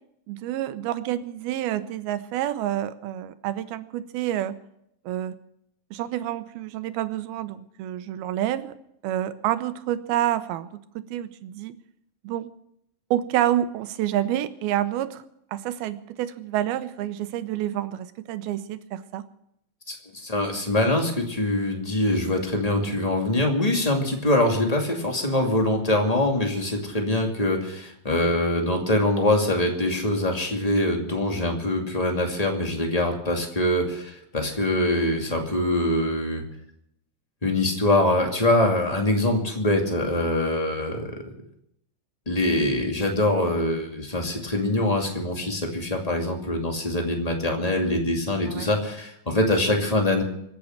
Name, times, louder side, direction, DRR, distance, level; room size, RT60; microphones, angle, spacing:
voice 1, 0.3-4.5 5.1-5.4 5.9-8.8 9.0-10.7 11.0-11.8 12.2-12.5 13.1-15.2 15.5-19.2 48.5-48.7, right 12 dB, 90° right, 12 dB, 2.8 m, -28 dB
voice 2, 19.9-36.4 37.4-41.2 42.2-50.2, left 1 dB, 15° left, 2 dB, 1.7 m, -24 dB
25.5 x 8.5 x 6.5 m, 0.77 s
omnidirectional pair, 4.2 m